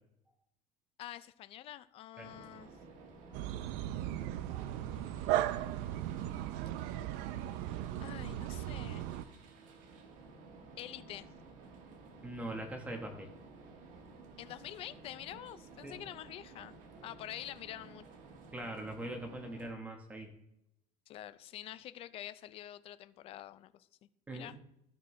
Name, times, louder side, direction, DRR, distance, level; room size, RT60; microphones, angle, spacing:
voice 1, 1.0-2.7 4.9-5.9 8.0-9.0 10.8-11.3 14.4-16.8 17.0-18.0 21.1-23.9 24.3-24.6, left 12 dB, 40° left, 0.4 m, -47 dB
sound 1, 2.2-19.7, right 3 dB, 60° right, 1.4 m, -55 dB
sound 2, 3.3-9.2, right 12 dB, 80° right, 0.5 m, -37 dB
voice 2, 12.2-13.3 15.8-16.0 18.5-20.3 24.3-24.5, right 1 dB, 10° right, 1.2 m, -42 dB
13.5 x 5.5 x 3.2 m
cardioid pair, 160°, 15 cm